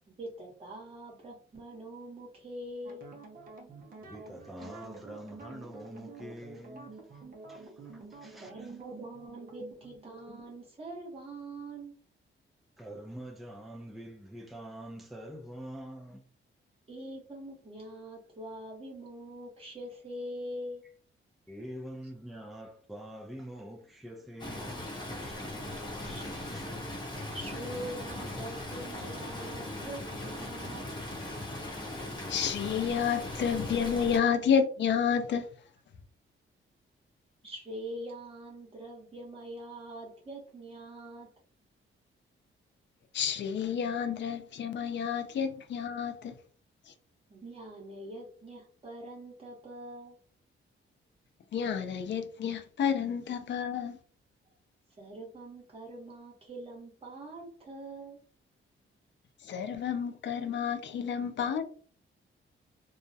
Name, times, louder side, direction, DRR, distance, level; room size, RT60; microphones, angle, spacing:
voice 1, 0.1-3.0 8.4-12.0 16.9-20.8 26.0-26.9 27.3-30.8 37.4-41.3 47.3-50.2 55.0-58.2, right 1 dB, 25° right, 1.0 m, -44 dB
sound 1, 2.8-10.5, right 3 dB, 45° right, 0.6 m, -49 dB
voice 2, 4.0-8.8 12.8-16.3 21.5-25.5 26.0-26.7, right 1 dB, ahead, 0.4 m, -46 dB
Stream, 24.4-34.2, left 1 dB, 20° left, 0.8 m, -39 dB
voice 3, 32.3-35.5 43.1-46.4 46.9-47.0 51.5-54.0 59.4-61.6, left 7 dB, 60° left, 0.5 m, -30 dB
2.3 x 2.1 x 2.7 m
wide cardioid pair, 150°, 21 cm